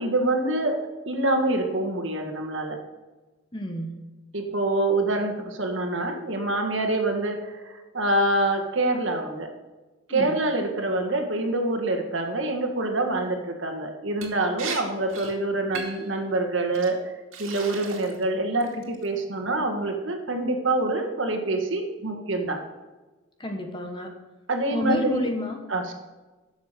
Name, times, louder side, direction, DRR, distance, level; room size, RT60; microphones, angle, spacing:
voice 1, 0.0-2.8 4.3-9.5 10.1-17.0 17.4-22.6 24.5-25.2 25.7-25.9, right 2 dB, 70° right, 4 dB, 1.8 m, -26 dB
voice 2, 3.5-4.0 10.1-10.4 23.4-24.1 24.7-25.6, left 1 dB, 25° left, 4 dB, 1.3 m, -30 dB
Liquid, 14.2-14.3 14.6-14.8 15.1-15.3 15.7-16.1 16.7-16.9 17.3-18.2 18.6-19.0, right 5 dB, 85° right, 2.2 m, -36 dB
12.0 x 7.1 x 6.7 m, 1.2 s
head